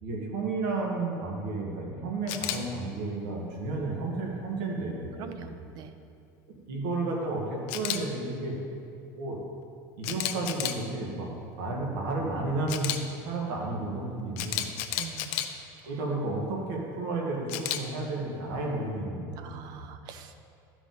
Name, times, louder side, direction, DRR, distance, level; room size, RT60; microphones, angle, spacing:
voice 1, 0.0-5.6 6.5-8.6 9.0-9.4 10.0-11.3 11.6-14.7 15.8-19.9, right 2 dB, 75° right, -2 dB, 1.7 m, -32 dB
Camera, 2.3-2.6 7.7-8.0 10.0-10.8 12.7-13.0 14.4-15.5 17.5-17.8, left 12 dB, 60° left, 0.6 m, -31 dB
voice 2, 5.2-6.0 15.0-15.5 15.8-16.0 19.4-20.4, right 7 dB, 45° right, 8 dB, 0.5 m, -44 dB
12.0 x 5.0 x 3.9 m, 2.4 s
cardioid pair, 160°, 10 cm